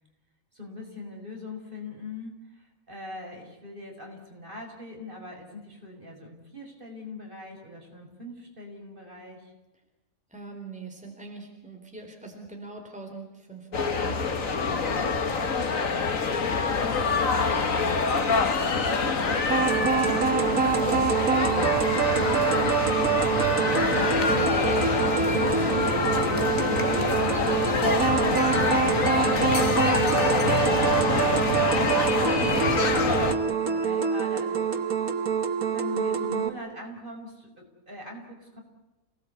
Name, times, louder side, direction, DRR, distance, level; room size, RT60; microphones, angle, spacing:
voice 1, 0.5-9.5 23.4-26.1 26.6-27.5 30.6-31.2 31.6-34.7 35.7-38.6, left 2 dB, 35° right, 1 dB, 6.0 m, -42 dB
voice 2, 10.3-14.4, right 3 dB, 5° right, 2 dB, 3.9 m, -43 dB
sound 1, 13.7-33.3, left 4 dB, 65° left, 2.1 m, -25 dB
sound 2, 19.5-36.5, right 7 dB, 90° right, 1.9 m, -25 dB
28.5 x 19.0 x 8.4 m, 1.1 s
omnidirectional pair, 1.5 m